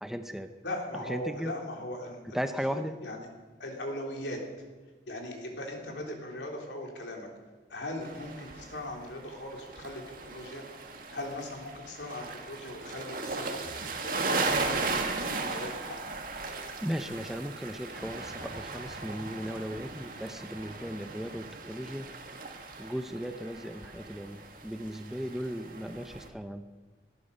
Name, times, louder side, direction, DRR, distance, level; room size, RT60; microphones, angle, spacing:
voice 1, 0.0-0.5 0.9-1.6 2.3-3.0 16.8-22.2 22.8-26.7, equal, ahead, 8 dB, 0.7 m, -36 dB
voice 2, 0.6-3.3 3.6-4.4 5.1-7.3 7.7-10.6 11.1-13.7 14.0-16.0, left 1 dB, 85° left, 1 dB, 3.4 m, -39 dB
sound 1, 8.0-26.3, right 3 dB, 50° right, 1.8 m, -37 dB
19.0 x 13.5 x 5.4 m, 1.3 s
head